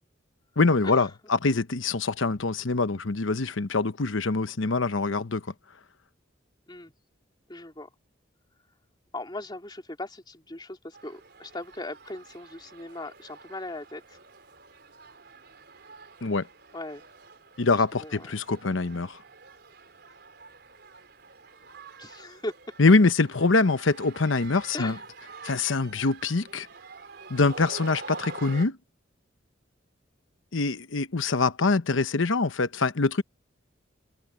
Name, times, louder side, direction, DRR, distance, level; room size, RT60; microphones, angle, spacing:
voice 1, 0.6-5.4 16.2-16.5 17.6-19.2 22.8-25.0 25.4-26.7 27.3-28.8 30.5-33.2, left 3 dB, 80° left, 1.0 m, -24 dB
voice 2, 7.5-7.9 9.1-14.2 16.7-17.0 17.8-18.4 22.0-22.5 24.7-25.0, left 2 dB, 20° left, 3.0 m, -39 dB
sound 1, 10.9-28.7, right 4 dB, 55° right, 4.7 m, -47 dB
open air
head